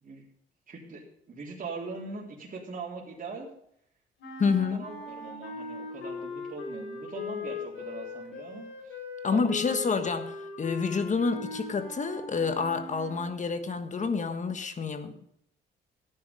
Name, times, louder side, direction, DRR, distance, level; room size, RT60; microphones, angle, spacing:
voice 1, 0.7-3.5 4.6-9.0 9.3-9.9, right 3 dB, 45° right, -3 dB, 3.7 m, -41 dB
sound 1, 4.2-13.4, left 4 dB, 75° left, 3.4 m, -39 dB
voice 2, 4.4-4.9 9.2-15.2, left 5 dB, 40° left, 9 dB, 1.4 m, -28 dB
13.5 x 10.0 x 5.3 m, 0.72 s
cardioid pair, 90°, 20 cm